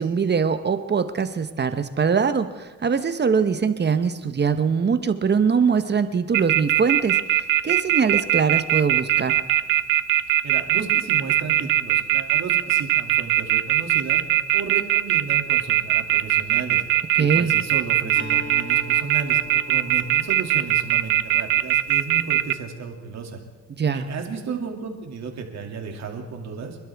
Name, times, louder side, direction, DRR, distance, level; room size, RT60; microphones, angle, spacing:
voice 1, 0.0-9.3 17.2-17.5 23.7-24.0, right 6 dB, 35° right, 10 dB, 1.0 m, -22 dB
sound 1, 6.3-22.5, right 14 dB, 90° right, 0.6 m, -20 dB
voice 2, 10.4-14.2 14.5-16.8 17.1-23.4 23.8-26.8, right 5 dB, 60° right, 2 dB, 2.5 m, -33 dB
Acoustic guitar, 18.2-22.0, left 2 dB, 40° left, 3.8 m, -41 dB
26.5 x 12.0 x 3.5 m, 1.3 s
cardioid pair, 90°, 30 cm